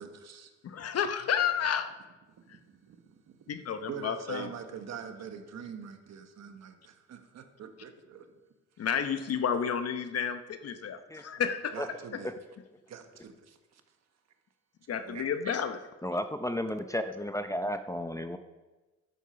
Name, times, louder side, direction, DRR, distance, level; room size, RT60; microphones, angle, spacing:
voice 1, 0.0-0.5 2.3-3.4 3.9-8.3 8.8-9.2 11.3-11.4 11.7-12.3 12.9-13.8 15.0-15.6, right 7 dB, 60° right, 6 dB, 1.4 m, -44 dB
voice 2, 0.6-1.9 3.5-4.5 8.8-11.7 14.9-15.8, left 7 dB, 55° left, 9 dB, 0.9 m, -31 dB
voice 3, 16.0-18.4, left 1 dB, 10° left, 8 dB, 0.6 m, -33 dB
11.0 x 8.3 x 5.7 m, 1.2 s
cardioid pair, 90°, 30 cm